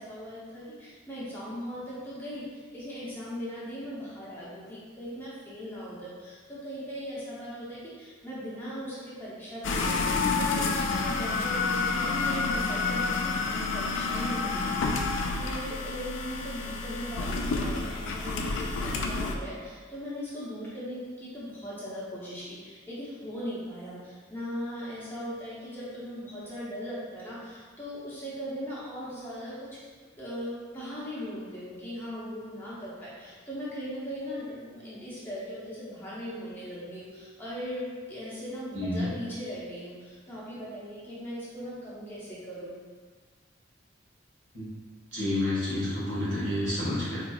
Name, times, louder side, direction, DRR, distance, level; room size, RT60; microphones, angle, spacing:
voice 1, 0.0-10.0 10.4-15.0 15.4-29.7 30.2-42.7, equal, 10° left, -9 dB, 0.7 m, -39 dB
sound 1, 9.6-19.3, left 4 dB, 75° left, 0.4 m, -29 dB
voice 2, 38.7-39.1 44.5-44.6 45.1-47.2, left 1 dB, 70° right, -8 dB, 1.3 m, -29 dB
4.4 x 2.9 x 2.3 m, 1.5 s
head